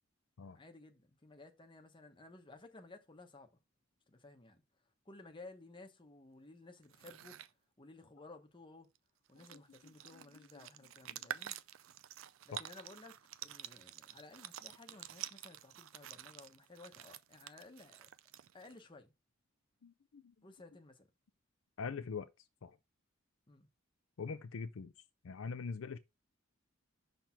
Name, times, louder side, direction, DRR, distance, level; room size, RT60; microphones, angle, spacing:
voice 1, 0.5-3.5 4.1-4.6 5.1-7.4 7.8-8.9 9.3-11.5 12.4-18.1 18.5-19.1 20.4-21.1 23.5-23.7, left 2 dB, 25° left, 0.9 m, -56 dB
sound 1, 6.8-7.5 8.9-9.0 9.3-18.8, right 11 dB, 70° right, 0.4 m, -49 dB
voice 2, 9.5-10.3 11.1-11.3 12.5-12.6 19.8-20.3 21.8-22.3 22.6-22.8 24.2-24.9 25.2-26.0, left 5 dB, 65° left, 0.5 m, -44 dB
5.9 x 3.4 x 5.8 m
head